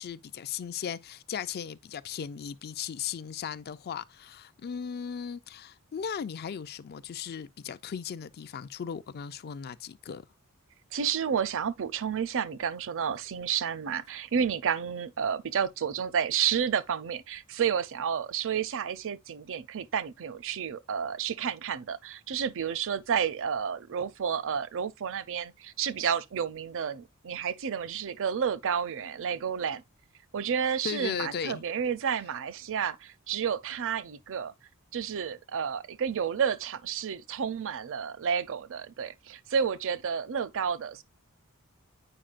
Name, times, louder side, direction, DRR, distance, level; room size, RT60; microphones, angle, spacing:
voice 1, 0.0-10.2 30.8-31.6, left 7 dB, 45° left, 0.4 m, -37 dB
voice 2, 10.9-29.8 30.3-34.5 34.9-41.0, right 7 dB, 60° right, 0.5 m, -31 dB
8.7 x 5.0 x 2.4 m
head